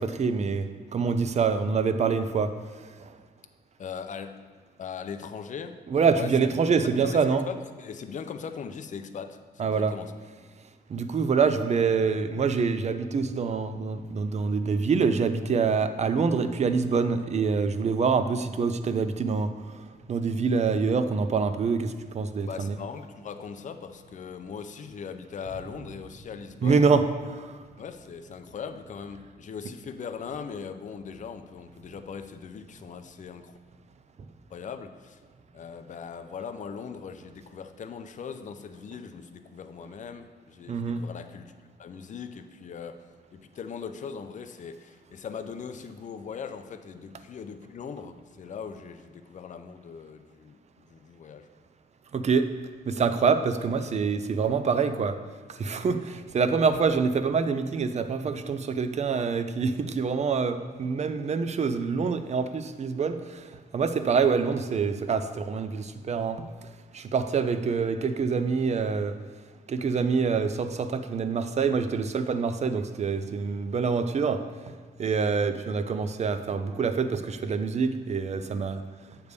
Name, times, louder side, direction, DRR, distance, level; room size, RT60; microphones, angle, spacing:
voice 1, 0.0-3.2 5.9-7.5 9.6-10.0 10.9-22.8 26.6-27.6 40.7-41.0 52.1-52.6 52.9-69.2 69.7-78.8, right 5 dB, 40° right, 10 dB, 0.5 m, -26 dB
voice 2, 3.8-4.4 4.8-5.8 6.1-6.4 6.8-10.1 22.4-26.8 27.8-33.6 34.5-35.2 35.5-41.5 41.8-43.1 43.3-50.6 50.9-51.5, left 6 dB, 45° left, 8 dB, 0.5 m, -40 dB
8.1 x 3.5 x 6.6 m, 1.5 s
wide cardioid pair, 130°, 17 cm